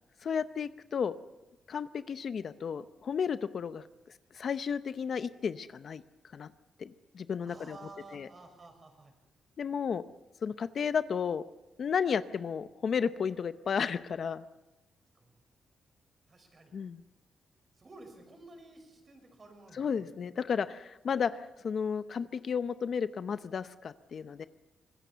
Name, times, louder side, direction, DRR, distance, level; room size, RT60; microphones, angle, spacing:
voice 1, 0.2-1.1 1.7-3.8 4.3-6.0 6.3-6.5 6.8-7.8 8.1-8.3 9.6-10.0 10.4-11.4 11.8-14.4 16.7-17.0 19.7-24.5, left 6 dB, 50° left, 12 dB, 0.7 m, -33 dB
voice 2, 7.4-9.1 15.1-15.3 16.3-16.7 17.8-20.1, right 2 dB, 35° right, 4 dB, 6.1 m, -52 dB
25.0 x 20.5 x 6.9 m, 1.0 s
cardioid pair, 130°, 0 cm